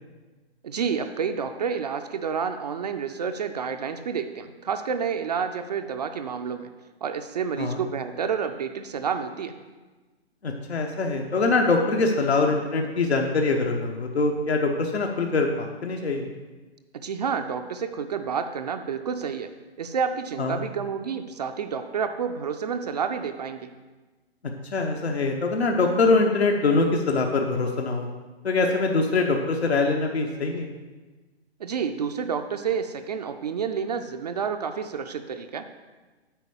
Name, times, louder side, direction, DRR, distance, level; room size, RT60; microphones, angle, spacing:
voice 1, 0.6-6.7 7.0-9.5 16.9-19.5 19.8-23.7 31.6-35.6, right 6 dB, 40° right, 7 dB, 0.4 m, -29 dB
voice 2, 10.4-16.3 20.4-20.6 24.7-28.1 28.4-30.7, left 3 dB, 75° left, 1 dB, 1.1 m, -23 dB
9.0 x 4.6 x 6.9 m, 1.3 s
figure-of-eight pair, 140°, 32 cm